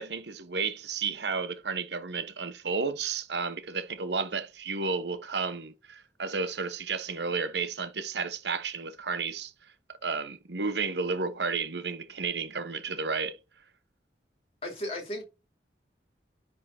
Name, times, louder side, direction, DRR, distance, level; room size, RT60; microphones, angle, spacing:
voice 1, 0.0-9.5 10.0-13.4, right 4 dB, 80° right, 1.0 m, -32 dB
voice 2, 14.6-15.2, left 1 dB, 35° left, 3.0 m, -34 dB
10.0 x 3.7 x 4.3 m
head